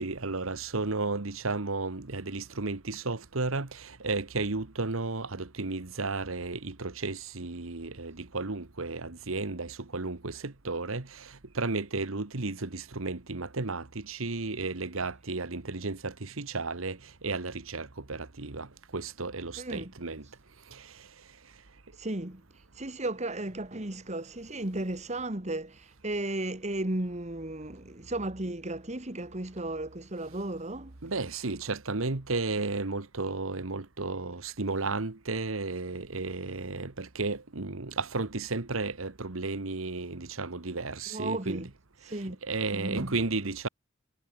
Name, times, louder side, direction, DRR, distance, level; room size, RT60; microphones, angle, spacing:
voice 1, 0.0-17.0 17.2-18.7 18.9-20.2 20.7-20.9 31.0-41.6 42.1-43.7, right 3 dB, 85° right, 1.5 m, -33 dB
voice 2, 19.6-19.9 22.0-22.4 22.8-31.0 41.1-41.7 42.0-42.4 42.7-43.2, right 1 dB, 35° right, 2.0 m, -34 dB
head